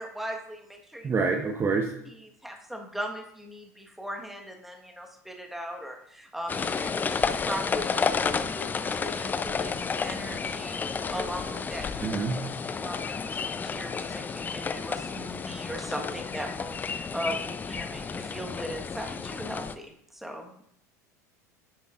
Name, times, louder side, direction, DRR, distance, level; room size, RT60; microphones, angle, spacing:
voice 1, 0.0-1.1 2.4-10.8 11.1-12.0 12.7-20.6, equal, ahead, 2 dB, 1.3 m, -39 dB
voice 2, 1.0-1.9 12.0-12.4, right 4 dB, 25° right, 3 dB, 0.9 m, -26 dB
sound 1, 6.5-19.7, left 5 dB, 20° left, 0.5 m, -31 dB
10.0 x 6.9 x 2.4 m, 0.69 s
figure-of-eight pair, 75°, 9 cm